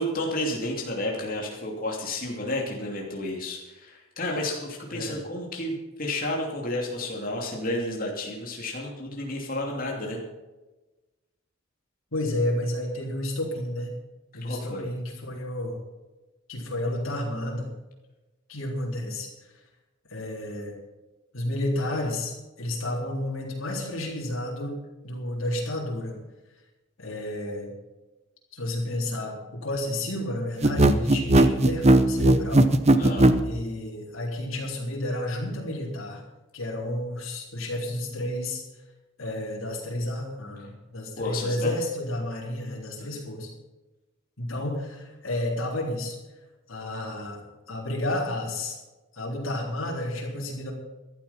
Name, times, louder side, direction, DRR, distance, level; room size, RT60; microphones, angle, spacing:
voice 1, 0.0-10.2 14.4-14.9 33.0-33.3 41.2-41.7, left 1 dB, 45° left, -1 dB, 2.8 m, -31 dB
voice 2, 12.1-13.9 14.3-15.8 16.5-17.7 18.5-19.5 20.1-20.7 21.3-24.8 25.0-26.2 27.0-27.7 28.5-32.7 33.4-36.2 36.5-38.6 39.2-43.5 44.4-46.2 46.7-48.8 49.1-50.7, left 1 dB, 75° left, -3 dB, 3.8 m, -31 dB
sound 1, 30.6-33.4, right 1 dB, 30° right, 0.8 m, -17 dB
14.5 x 12.0 x 5.7 m, 1.1 s
head